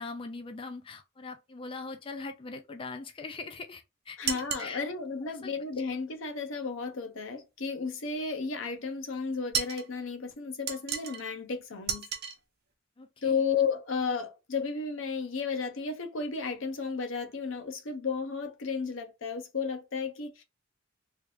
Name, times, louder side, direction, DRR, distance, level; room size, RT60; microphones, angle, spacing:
voice 1, 0.0-4.8 5.2-5.5 13.0-13.4, left 3 dB, 25° left, 0.4 m, -41 dB
voice 2, 4.2-12.1 13.2-20.4, left 5 dB, 80° left, 0.7 m, -33 dB
sound 1, 4.2-4.7 9.5-9.9 10.7-11.2 11.9-12.4, right 7 dB, 55° right, 0.7 m, -32 dB
3.2 x 2.5 x 3.2 m
head